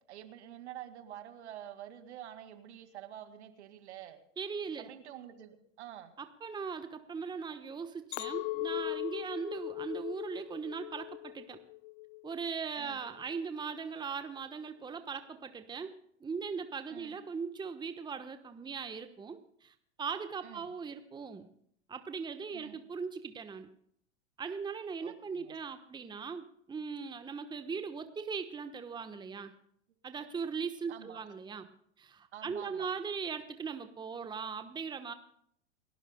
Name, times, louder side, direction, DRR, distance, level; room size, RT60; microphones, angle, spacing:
voice 1, 0.1-4.2 4.8-6.1 12.8-13.0 16.9-17.2 20.4-20.7 22.5-22.8 25.0-25.5 30.9-31.2 32.3-32.9, right 11 dB, 70° right, 8 dB, 2.1 m, -48 dB
voice 2, 4.4-4.9 6.2-11.6 12.2-15.9 16.2-21.5 21.9-23.7 24.4-29.5 30.0-31.7 32.0-35.1, right 5 dB, 15° right, 9 dB, 1.0 m, -39 dB
Chink clink, 8.1-12.5 12.9-13.4, left 23 dB, 50° left, 0.4 m, -39 dB
29.5 x 12.5 x 2.2 m, 0.67 s
hypercardioid pair, 95°, 35 cm